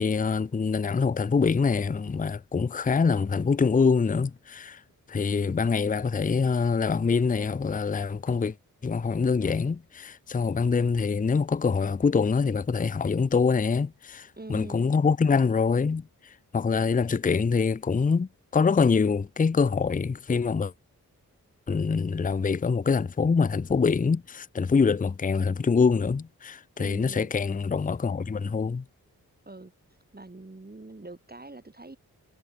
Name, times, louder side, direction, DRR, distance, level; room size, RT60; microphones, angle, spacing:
voice 1, 0.0-4.8 5.1-8.5 8.8-20.7 21.7-28.8, left 5 dB, 25° left, 0.5 m, -25 dB
voice 2, 14.4-14.9 26.8-27.3 29.5-29.7 30.1-32.0, right 2 dB, 25° right, 2.8 m, -43 dB
cardioid pair, 50°, 36 cm